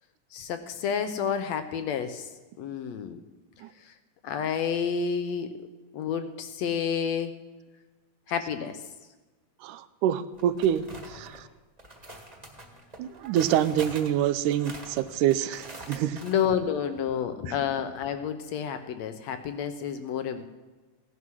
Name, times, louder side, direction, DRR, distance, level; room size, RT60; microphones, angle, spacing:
voice 1, 0.3-2.3 2.6-3.2 4.2-5.5 5.9-7.3 8.3-8.8 16.2-20.5, left 7 dB, 70° left, 9 dB, 1.8 m, -29 dB
voice 2, 9.6-11.4 13.0-16.2 17.5-17.6, right 10 dB, 85° right, 12 dB, 2.2 m, -26 dB
sound 1, 10.4-11.4 11.8-16.3, right 1 dB, 20° right, 1.2 m, -44 dB
16.5 x 11.5 x 6.2 m, 1.2 s
omnidirectional pair, 3.6 m